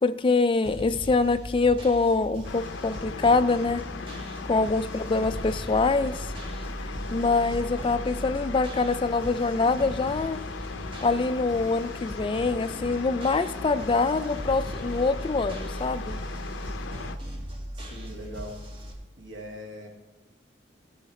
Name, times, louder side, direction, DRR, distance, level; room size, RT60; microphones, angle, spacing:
voice 1, 0.0-3.8 4.5-6.3 6.8-10.4 11.0-16.2, left 3 dB, 25° left, 11 dB, 0.3 m, -25 dB
sound 1, 0.6-18.9, equal, 30° right, 1.6 m, -38 dB
sound 2, 2.4-17.2, left 4 dB, 80° left, 0.6 m, -39 dB
voice 2, 4.3-4.7 17.7-18.6 19.2-19.9, equal, 75° right, 1 dB, 1.7 m, -41 dB
15.0 x 5.0 x 4.2 m, 1.1 s
head